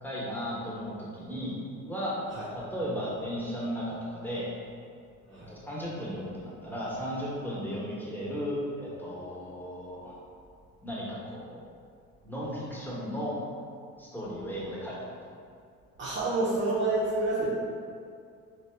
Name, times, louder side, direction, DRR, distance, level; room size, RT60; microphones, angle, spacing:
voice 1, 0.0-1.5 1.8-2.2 2.5-4.5 5.3-10.1 10.8-11.6 12.2-13.3 14.0-15.1, equal, 5° left, -7 dB, 0.9 m, -35 dB
voice 2, 16.0-17.5, right 2 dB, 35° right, -7 dB, 0.6 m, -28 dB
2.8 x 2.1 x 3.2 m, 2.3 s
supercardioid pair, 70°, 33 cm